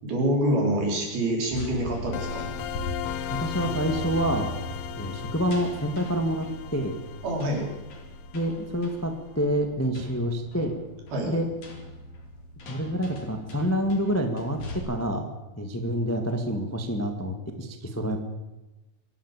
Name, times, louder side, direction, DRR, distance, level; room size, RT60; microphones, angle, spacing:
voice 1, 0.0-2.5 7.2-7.7 11.1-11.3, right 1 dB, 85° right, 0 dB, 6.4 m, -26 dB
sound 1, 1.4-14.8, left 1 dB, 50° left, 4.0 m, -40 dB
sound 2, 2.1-8.8, left 12 dB, 75° left, 2.5 m, -37 dB
voice 2, 3.3-4.5 4.9-6.9 8.3-10.7 11.3-11.4 12.6-15.3 15.6-18.2, equal, 10° left, 5 dB, 0.6 m, -27 dB
25.5 x 12.0 x 8.4 m, 1.0 s
omnidirectional pair, 4.3 m